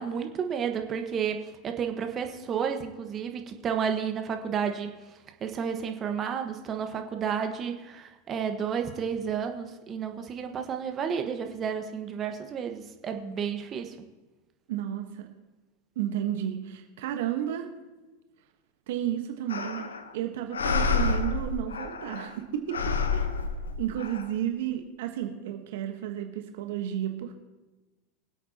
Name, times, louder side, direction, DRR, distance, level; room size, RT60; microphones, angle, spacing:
voice 1, 0.0-4.9 5.4-14.0, right 7 dB, 35° right, 5 dB, 1.4 m, -31 dB
voice 2, 14.7-15.3 16.0-17.7 18.9-19.8 20.1-23.3 23.8-27.3, right 11 dB, 65° right, 5 dB, 1.2 m, -32 dB
sound 1, 19.5-20.1 20.5-22.4 22.7-24.2, left 4 dB, 85° left, 0.9 m, -29 dB
23.0 x 8.3 x 2.9 m, 1.2 s
hypercardioid pair, 90°, 0 cm